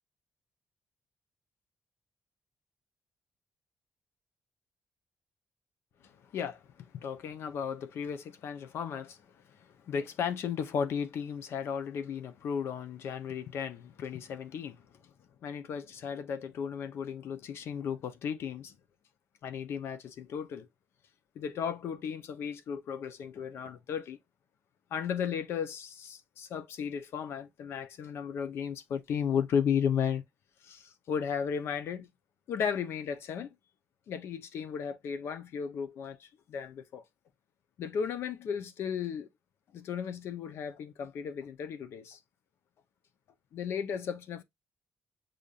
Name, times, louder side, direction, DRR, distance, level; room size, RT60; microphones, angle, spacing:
voice 1, 6.0-9.2 9.9-14.8 15.4-18.8 19.4-20.7 21.4-24.2 24.9-30.2 30.6-32.1 32.5-33.5 34.1-37.0 37.8-39.3 39.7-42.2 43.5-44.4, left 7 dB, 80° left, 0.7 m, -35 dB
6.8 x 2.5 x 2.4 m
cardioid pair, 90°, 4 cm